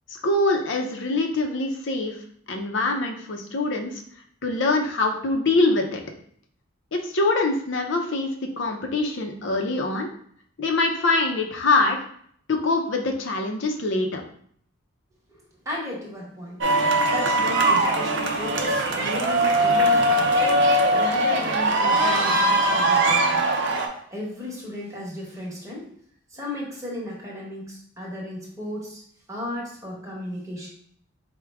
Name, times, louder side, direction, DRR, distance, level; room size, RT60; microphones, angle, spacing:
voice 1, 0.2-2.1 2.5-3.9 4.4-6.0 6.9-10.1 10.6-12.0 12.5-14.2, left 2 dB, 60° left, 3 dB, 0.6 m, -24 dB
voice 2, 15.3-16.6 17.1-20.4 20.9-23.5 24.1-25.9 26.3-29.0 29.3-30.7, left 1 dB, 15° right, -4 dB, 1.1 m, -35 dB
sound 1, 16.6-23.9, right 1 dB, 60° right, 0.5 m, -21 dB
4.7 x 2.2 x 3.4 m, 0.63 s
head